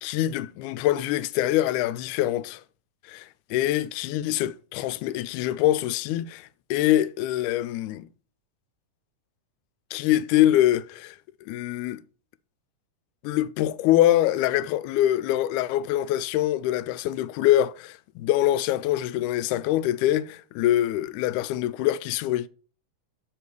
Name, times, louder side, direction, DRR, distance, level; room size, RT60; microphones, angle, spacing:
voice 1, 0.0-2.6 3.1-8.1 9.9-11.2 11.5-12.0 13.2-22.5, left 13 dB, 80° left, 1.9 m, -24 dB
7.6 x 4.7 x 6.7 m
omnidirectional pair, 3.6 m